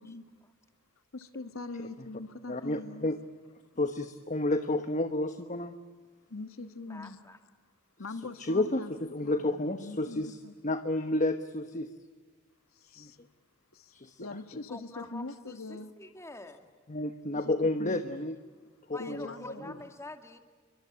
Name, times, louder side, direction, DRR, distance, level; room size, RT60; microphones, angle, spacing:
voice 1, 1.1-3.1 6.3-7.2 8.0-10.5 12.7-13.2 13.7-15.9 17.3-17.5 17.8-18.0 19.0-19.8, left 3 dB, 70° left, 9 dB, 1.3 m, -43 dB
voice 2, 2.5-3.2 3.8-5.7 8.4-10.4 10.6-11.9 13.0-13.1 13.9-14.2 16.9-18.3 18.9-19.3, left 2 dB, 35° left, 8 dB, 1.2 m, -30 dB
voice 3, 6.9-7.4 14.7-16.6 18.9-20.4, left 2 dB, 15° left, 6 dB, 2.3 m, -46 dB
29.5 x 23.5 x 8.6 m, 1.5 s
head